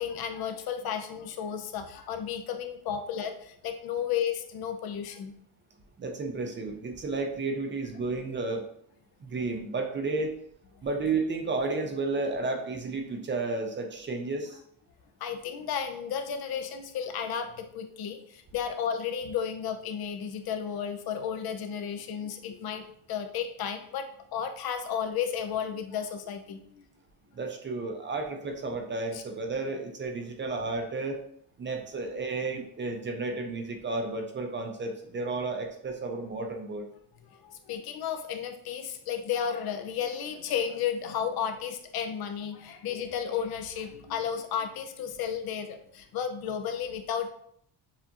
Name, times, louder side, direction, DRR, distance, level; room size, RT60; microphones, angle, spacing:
voice 1, 0.0-5.3 15.2-26.8 29.1-29.2 37.3-47.3, left 8 dB, 65° left, 7 dB, 0.6 m, -33 dB
voice 2, 6.0-8.6 9.2-10.3 10.8-14.6 27.3-31.2 31.6-36.9, right 3 dB, 30° right, 4 dB, 0.5 m, -32 dB
6.8 x 2.4 x 2.8 m, 0.67 s
cardioid pair, 165°, 40 cm